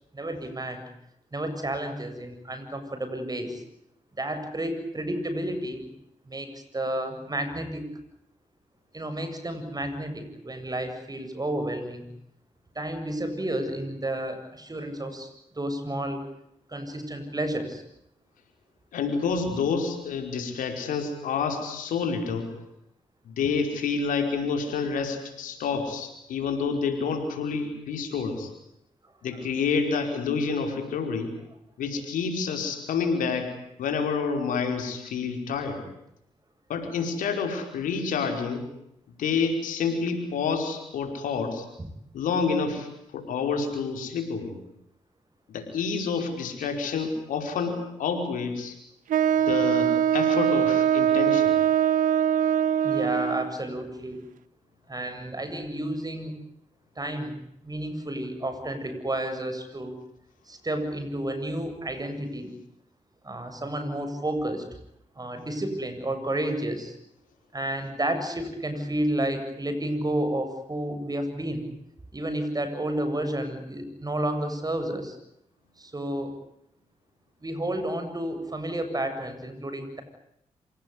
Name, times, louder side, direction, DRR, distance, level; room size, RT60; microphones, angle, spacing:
voice 1, 0.1-0.8 1.3-3.6 4.2-5.9 6.3-7.9 8.9-12.1 12.7-15.3 15.5-16.2 16.7-17.8 41.8-41.9 52.8-54.2 54.9-56.4 57.0-60.0 60.5-62.5 63.2-64.6 65.2-66.9 67.5-71.7 72.1-75.2 75.8-76.4 77.4-80.0, right 1 dB, 30° right, 8 dB, 7.7 m, -31 dB
voice 2, 18.9-22.5 23.2-28.5 29.2-31.3 31.8-33.5 33.8-35.8 36.7-38.6 39.2-41.6 42.1-42.9 43.1-44.5 45.5-48.7 49.5-51.5, left 5 dB, 85° left, 5 dB, 5.1 m, -28 dB
Wind instrument woodwind instrument, 49.1-53.5, right 9 dB, 75° right, 1.1 m, -22 dB
26.5 x 18.5 x 9.9 m, 0.79 s
supercardioid pair, 50°, 14 cm